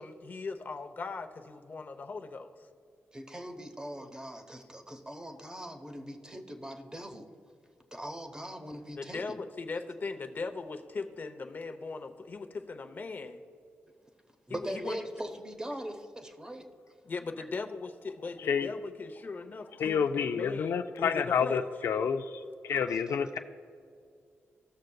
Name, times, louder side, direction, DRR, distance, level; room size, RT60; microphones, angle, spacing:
voice 1, 0.0-2.5 9.0-13.4 14.5-15.0 17.0-21.7, left 4 dB, 45° left, 7 dB, 0.7 m, -39 dB
voice 2, 3.1-7.3 7.9-9.4 14.5-16.7 22.9-23.4, equal, 15° right, 5 dB, 0.8 m, -41 dB
voice 3, 19.8-22.3 22.6-23.4, left 6 dB, 75° left, 8 dB, 0.3 m, -29 dB
16.0 x 6.4 x 2.3 m, 2.3 s
cardioid pair, 95°, 5 cm